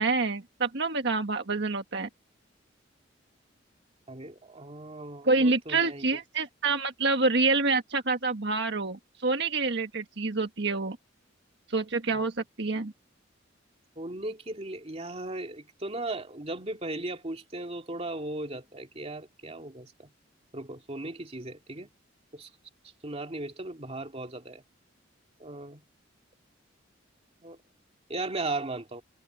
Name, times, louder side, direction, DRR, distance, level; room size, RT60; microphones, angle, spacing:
voice 1, 0.0-2.1 5.2-11.0 11.7-12.9, right 3 dB, 60° right, 1.5 m, -27 dB
voice 2, 4.1-6.2 12.1-12.2 14.0-20.1 20.5-21.9 22.3-22.5 23.0-24.6 25.4-25.8 27.4-27.6 28.1-29.0, right 2 dB, 30° right, 2.5 m, -37 dB
head